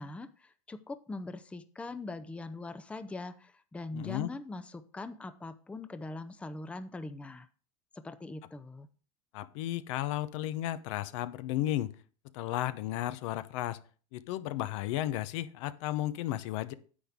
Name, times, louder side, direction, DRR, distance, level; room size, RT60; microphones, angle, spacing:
voice 1, 0.0-7.5 7.9-8.9, left 2 dB, 5° left, 11 dB, 0.6 m, -42 dB
voice 2, 3.9-4.3 9.3-11.9 12.3-13.8 14.1-16.7, left 14 dB, 70° left, 14 dB, 0.8 m, -34 dB
9.8 x 8.2 x 3.6 m, 0.40 s
supercardioid pair, 130°, 17 cm